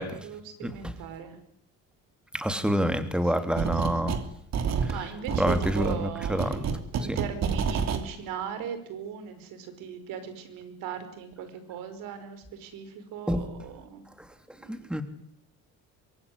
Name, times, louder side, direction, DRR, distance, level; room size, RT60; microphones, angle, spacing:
voice 1, 0.0-1.4 3.2-4.3 4.9-6.7 7.0-14.0 14.6-14.9, right 8 dB, 90° right, 10 dB, 5.4 m, -39 dB
voice 2, 0.6-0.9 2.3-4.2 5.4-6.5 7.1-7.2 13.3-13.5 14.7-15.0, equal, 5° right, 8 dB, 3.0 m, -27 dB
sound 1, 3.6-4.3 4.5-8.0, right 6 dB, 55° right, 3.2 m, -29 dB
24.5 x 22.5 x 9.8 m, 0.70 s
cardioid pair, 125°, 32 cm